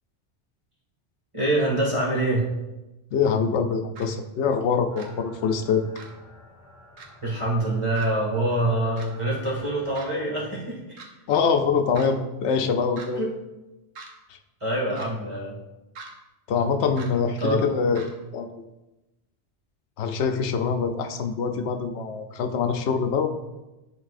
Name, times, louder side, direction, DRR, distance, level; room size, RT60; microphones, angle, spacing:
voice 1, 1.3-2.5 7.2-11.0 13.2-13.3 14.6-15.6 17.4-17.6, right 1 dB, 30° right, -4 dB, 1.8 m, -25 dB
voice 2, 3.1-5.8 11.3-13.3 14.3-14.4 14.9-15.0 16.5-18.7 20.0-23.3, left 5 dB, 85° left, 6 dB, 0.9 m, -24 dB
sound 1, 4.0-4.1 5.0-5.1 6.0-6.1 7.0-7.1 7.9-8.1 9.0-9.1 9.9-10.1 11.0-11.1 11.9-12.1 13.0-13.1 13.9-14.1 14.9-15.1 15.9-16.1 17.0-17.1 17.9-18.1, right 4 dB, 90° right, 1.1 m, -41 dB
sound 2, 4.9-10.2, left 1 dB, 15° left, 1.8 m, -50 dB
10.5 x 4.0 x 2.4 m, 1.0 s
omnidirectional pair, 1.1 m